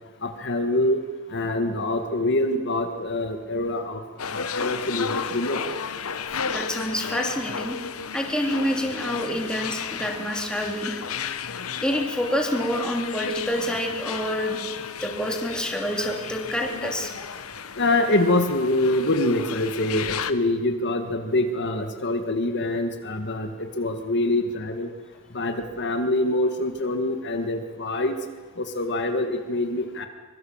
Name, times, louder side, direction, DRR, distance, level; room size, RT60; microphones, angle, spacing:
voice 1, 0.2-1.0 1.3-4.0 4.3-5.6 17.8-23.5 23.8-24.9 25.3-28.1 28.6-30.1, left 1 dB, 55° left, 6 dB, 1.8 m, -25 dB
sound 1, 4.2-20.3, left 6 dB, 75° left, 1.1 m, -33 dB
voice 2, 6.5-7.8 8.1-11.0 11.8-14.6 15.0-17.1, equal, 5° left, 1 dB, 3.1 m, -27 dB
24.5 x 23.0 x 7.3 m, 1.4 s
head